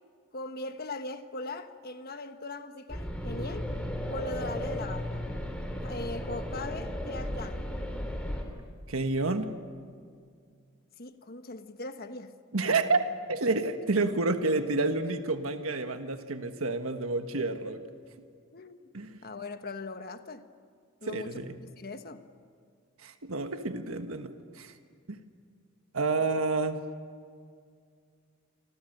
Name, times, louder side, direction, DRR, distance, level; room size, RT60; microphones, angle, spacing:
voice 1, 0.3-3.7 4.1-5.2 5.8-7.8 11.0-12.4 18.5-18.9 19.2-20.4 21.0-21.4 21.8-22.2, left 2 dB, 45° left, 1.3 m, -40 dB
sound 1, 2.9-8.4, equal, 5° left, 3.2 m, -35 dB
voice 2, 8.9-9.5 12.5-13.0 13.3-17.8 18.9-19.2 21.0-21.6 23.0-24.7 25.1-25.2 25.9-26.8, right 3 dB, 75° right, 1.4 m, -29 dB
28.5 x 25.5 x 6.7 m
head